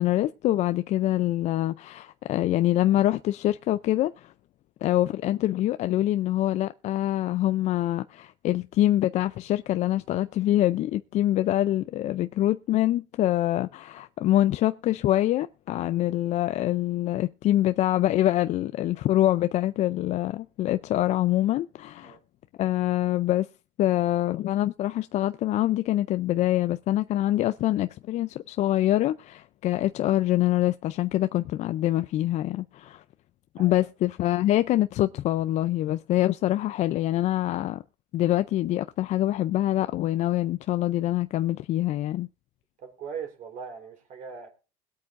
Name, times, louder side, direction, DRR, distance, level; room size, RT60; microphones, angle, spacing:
voice 1, 0.0-4.3 4.8-22.2 22.6-23.5 23.8-33.0 33.6-37.8 38.1-42.3, left 14 dB, 50° left, 0.5 m, -25 dB
voice 2, 33.6-33.9 42.8-44.5, right 6 dB, 50° right, 3.8 m, -40 dB
21.5 x 8.6 x 2.5 m
cardioid pair, 130°, 16 cm